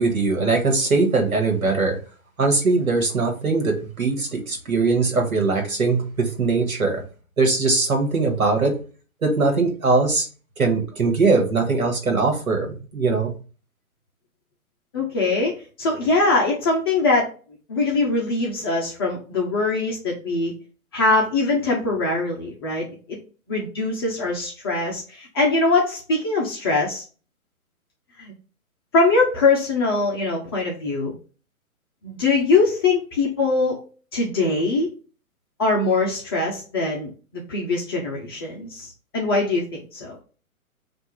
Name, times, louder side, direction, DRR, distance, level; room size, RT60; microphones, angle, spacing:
voice 1, 0.0-2.0 2.4-7.0 7.4-8.7 9.2-10.3 10.6-13.3, right 3 dB, 75° right, 2 dB, 1.5 m, -21 dB
voice 2, 14.9-17.3 17.7-20.5 20.9-23.2 23.5-27.0 28.2-28.3 28.9-31.1 32.0-33.8 34.1-34.9 35.6-40.2, left 3 dB, 15° left, -3 dB, 0.5 m, -22 dB
4.6 x 2.5 x 4.4 m, 0.37 s
figure-of-eight pair, 125°, 43 cm